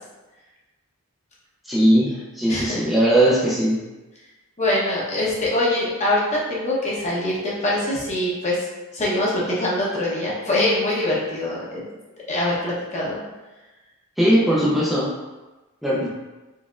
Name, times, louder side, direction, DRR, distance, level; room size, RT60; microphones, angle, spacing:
voice 1, 1.7-3.8 14.2-15.1 15.8-16.1, right 1 dB, ahead, -8 dB, 0.5 m, -19 dB
voice 2, 2.5-2.9 4.6-8.6 8.9-11.9 12.3-13.2, left 1 dB, 35° left, -5 dB, 0.9 m, -23 dB
4.0 x 3.4 x 2.4 m, 1.1 s
head